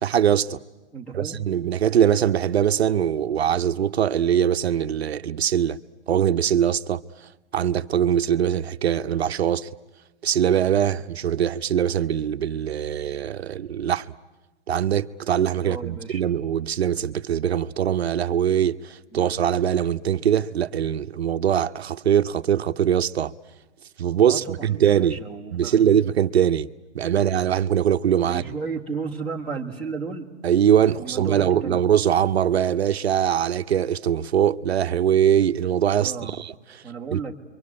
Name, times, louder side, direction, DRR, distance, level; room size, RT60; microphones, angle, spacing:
voice 1, 0.0-0.6 1.1-5.8 6.1-7.0 7.5-9.7 10.2-14.1 14.7-23.3 24.0-25.2 25.5-26.7 26.9-28.5 30.4-36.8 37.1-37.2, right 9 dB, 65° right, 0.8 m, -22 dB
voice 2, 0.9-1.4 15.6-16.2 19.1-19.3 24.3-25.9 28.2-30.3 31.0-31.8 36.0-36.4 36.8-37.3, right 5 dB, 5° left, 1.5 m, -33 dB
29.0 x 24.0 x 8.6 m
hypercardioid pair, 175°, 34 cm